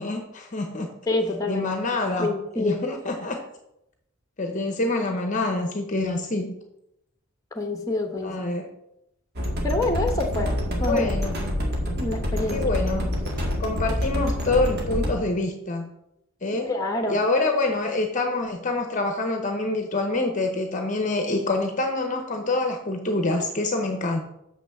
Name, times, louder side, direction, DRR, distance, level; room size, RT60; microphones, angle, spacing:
voice 1, 0.0-0.9 1.5-3.4 4.4-6.5 8.2-8.6 10.8-11.4 12.5-13.3 13.6-15.9 16.4-16.7 17.1-24.2, left 2 dB, 35° left, 5 dB, 0.9 m, -26 dB
voice 2, 1.1-1.7 2.2-2.8 7.5-8.3 9.6-10.5 10.8-11.2 12.0-12.6 16.7-17.2, left 2 dB, 15° left, 4 dB, 1.1 m, -26 dB
sound 1, 9.4-15.1, left 1 dB, 50° right, 2.0 m, -27 dB
6.6 x 5.9 x 7.1 m, 0.83 s
head